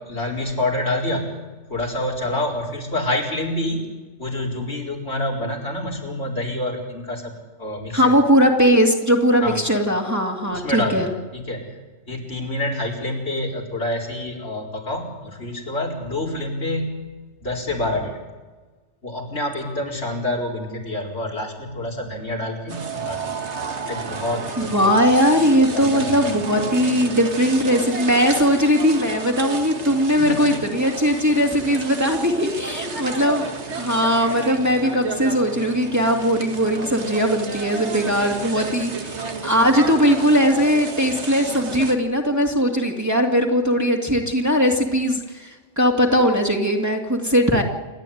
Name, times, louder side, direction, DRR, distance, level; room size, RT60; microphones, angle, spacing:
voice 1, 0.1-1.3 1.7-3.8 4.2-7.3 7.6-8.1 9.4-9.6 10.5-11.7 12.1-17.0 17.4-18.2 19.0-23.2 23.9-25.0 25.7-26.3 30.2-30.5 34.2-34.4, left 1 dB, 65° left, -2 dB, 4.7 m, -27 dB
voice 2, 7.9-11.1 24.6-47.6, equal, 15° right, 0 dB, 2.4 m, -19 dB
sound 1, 22.7-42.0, right 4 dB, 70° right, 1.9 m, -31 dB
28.5 x 12.0 x 9.4 m, 1.3 s
omnidirectional pair, 1.2 m